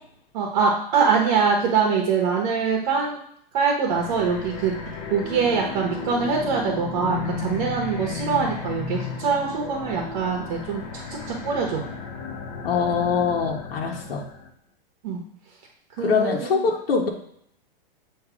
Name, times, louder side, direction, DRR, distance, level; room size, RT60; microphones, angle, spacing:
voice 1, 0.3-3.2 3.5-4.8 5.1-11.8 15.0-15.2 16.0-16.6, right 5 dB, 40° right, 0 dB, 1.0 m, -24 dB
sound 1, 3.9-14.5, left 4 dB, 45° left, 1.1 m, -34 dB
voice 2, 12.6-14.2 16.0-17.1, left 5 dB, 75° left, 0 dB, 1.3 m, -23 dB
7.8 x 2.8 x 4.9 m, 0.69 s
supercardioid pair, 170°, 29 cm